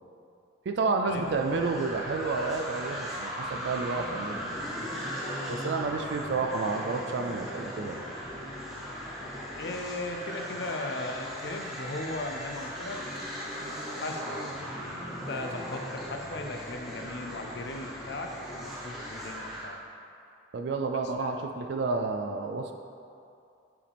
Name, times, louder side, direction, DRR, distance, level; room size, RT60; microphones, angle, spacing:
voice 1, 0.7-4.4 5.5-8.0 20.5-22.7, right 4 dB, 65° right, 4 dB, 0.4 m, -30 dB
sound 1, 1.1-19.7, equal, ahead, 1.0 m, -38 dB
voice 2, 9.6-13.0 13.9-14.4 15.3-18.3 18.6-19.8 21.2-21.3, left 2 dB, 60° left, 4 dB, 0.5 m, -37 dB
7.2 x 4.9 x 3.4 m, 2.5 s
head